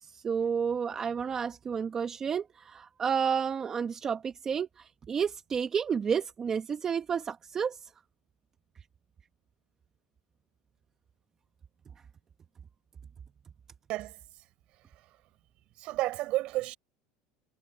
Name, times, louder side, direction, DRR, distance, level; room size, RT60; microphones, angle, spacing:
voice 1, 0.0-7.9, right 7 dB, 25° right, 1.0 m, -31 dB
voice 2, 15.8-16.8, right 17 dB, 55° right, 6.3 m, -32 dB
supercardioid pair, 130°, 2 cm